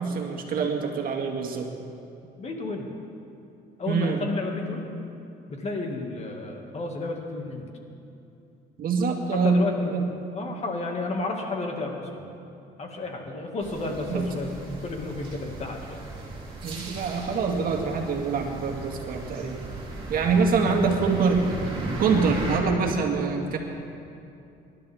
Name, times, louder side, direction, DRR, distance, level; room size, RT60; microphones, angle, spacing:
voice 1, 0.0-1.7 3.9-4.2 8.8-9.7 9.9-10.1 14.1-14.3 16.6-19.6 20.1-21.5 22.0-23.6, right 5 dB, 60° right, 2 dB, 1.9 m, -25 dB
voice 2, 2.4-2.9 3.8-4.8 5.5-7.6 9.3-12.2 12.8-16.0 17.7-17.8 20.6-21.0, left 2 dB, 40° left, 2 dB, 2.1 m, -32 dB
sound 1, 13.6-22.6, right 2 dB, 30° right, 3.3 m, -36 dB
26.0 x 12.0 x 3.6 m, 2.6 s
cardioid pair, 110°, 17 cm